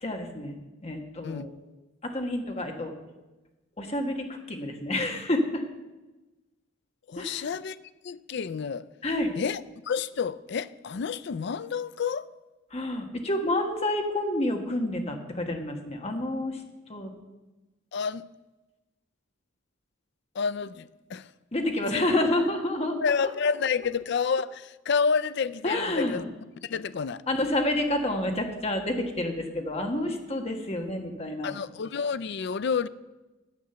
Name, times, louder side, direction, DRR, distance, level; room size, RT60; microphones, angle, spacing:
voice 1, 0.0-1.5 2.0-2.9 3.8-5.6 7.2-7.5 9.0-9.3 12.7-16.6 16.9-17.1 21.5-23.0 25.6-26.2 27.3-31.5, left 1 dB, 30° left, 1.3 m, -29 dB
voice 2, 7.1-7.8 8.0-8.9 9.4-12.3 17.9-18.3 20.3-21.3 21.8-22.0 23.0-26.2 26.6-27.2 31.4-32.9, left 5 dB, 60° left, 0.4 m, -29 dB
9.7 x 7.6 x 6.8 m
head